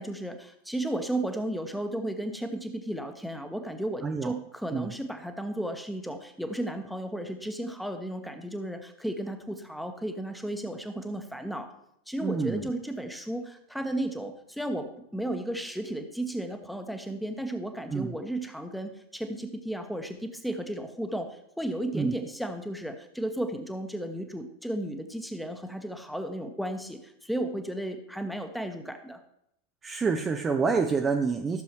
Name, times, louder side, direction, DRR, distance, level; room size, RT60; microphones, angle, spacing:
voice 1, 0.0-11.7 12.1-29.2, right 1 dB, ahead, 6 dB, 1.1 m, -34 dB
voice 2, 4.0-4.3 4.7-4.9 12.2-12.6 17.9-18.1 21.9-22.1 29.8-31.6, right 5 dB, 15° right, 4 dB, 0.6 m, -27 dB
14.5 x 6.9 x 3.0 m, 0.76 s
figure-of-eight pair, 90°, 0 cm